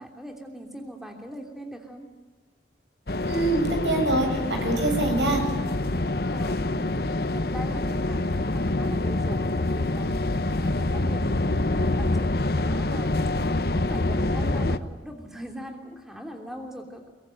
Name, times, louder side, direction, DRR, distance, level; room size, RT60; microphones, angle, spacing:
voice 1, 0.0-2.1 6.3-7.0 7.3-10.1 10.5-13.3 13.6-17.1, equal, ahead, 3 dB, 3.0 m, -40 dB
sound 1, 3.1-14.8, left 2 dB, 55° left, 1.1 m, -26 dB
voice 2, 3.2-5.4, right 2 dB, 85° right, 4 dB, 7.8 m, -25 dB
25.0 x 22.5 x 9.2 m, 1.3 s
head